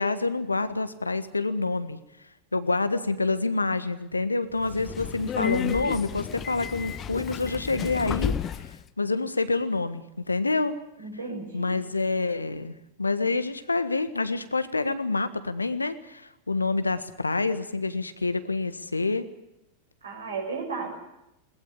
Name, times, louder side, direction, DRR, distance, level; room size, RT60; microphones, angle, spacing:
voice 1, 0.0-2.0 2.5-8.3 9.0-10.7 11.5-19.3, left 3 dB, 80° left, 12 dB, 1.5 m, -27 dB
Subway metro underground, 4.6-8.8, left 9 dB, 25° left, 1.0 m, -32 dB
voice 2, 11.0-11.8 20.0-21.0, right 4 dB, 70° right, 3 dB, 6.7 m, -34 dB
21.0 x 19.5 x 8.7 m, 0.88 s
figure-of-eight pair, 90°, 0 cm